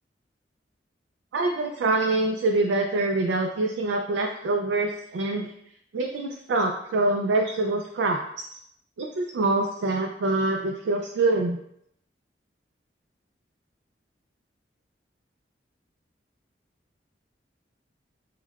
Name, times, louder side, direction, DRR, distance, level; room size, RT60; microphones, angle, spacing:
voice 1, 1.3-5.5 5.9-8.2 9.0-11.6, right 2 dB, 85° right, 2 dB, 0.3 m, -25 dB
4.5 x 2.2 x 2.3 m, 0.74 s
head